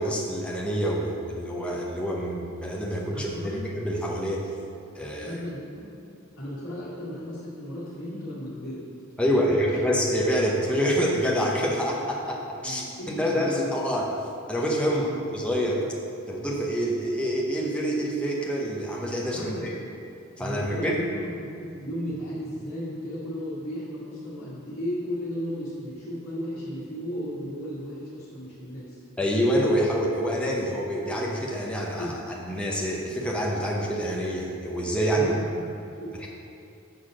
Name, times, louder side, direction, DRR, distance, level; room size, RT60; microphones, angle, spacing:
voice 1, 0.0-4.5 4.9-5.4 9.2-12.8 13.2-14.1 14.5-15.1 15.3-15.8 16.3-19.7 20.4-21.0 29.2-35.3 36.2-36.3, equal, 5° left, -3 dB, 0.8 m, -26 dB
voice 2, 3.1-3.6 5.2-6.0 6.4-8.8 9.2-9.4 12.6-13.7 14.9-15.2 19.2-19.7 20.4-29.0 32.0-32.2 35.1-35.7 36.0-36.3, equal, 70° left, -11 dB, 1.6 m, -35 dB
6.6 x 4.0 x 6.1 m, 2.7 s
head